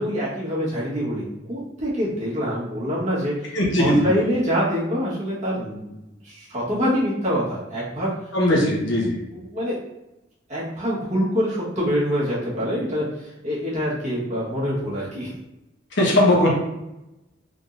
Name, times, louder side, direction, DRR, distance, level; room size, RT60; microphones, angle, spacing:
voice 1, 0.0-3.5 3.8-5.9 6.2-8.1 9.3-9.8 10.5-15.3, equal, 40° right, -7 dB, 1.5 m, -25 dB
voice 2, 3.5-4.1 8.3-9.2 15.9-16.5, left 1 dB, 70° left, -3 dB, 1.0 m, -19 dB
3.6 x 3.6 x 2.6 m, 0.93 s
head